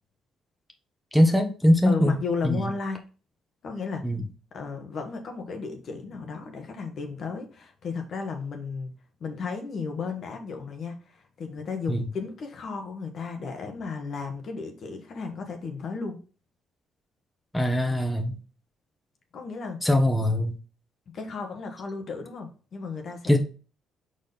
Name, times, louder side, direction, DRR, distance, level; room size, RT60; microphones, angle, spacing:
voice 1, 1.1-2.2 2.4-2.7 4.0-4.2 11.9-12.0 17.5-18.4 19.8-20.6 23.3-23.4, left 1 dB, 5° left, 3 dB, 1.3 m, -21 dB
voice 2, 1.8-3.0 3.6-4.0 4.5-8.9 9.2-16.2 19.3-19.8 21.1-23.4, left 4 dB, 60° left, 4 dB, 1.4 m, -34 dB
5.0 x 4.3 x 5.4 m, 0.36 s
supercardioid pair, 75°, 0 cm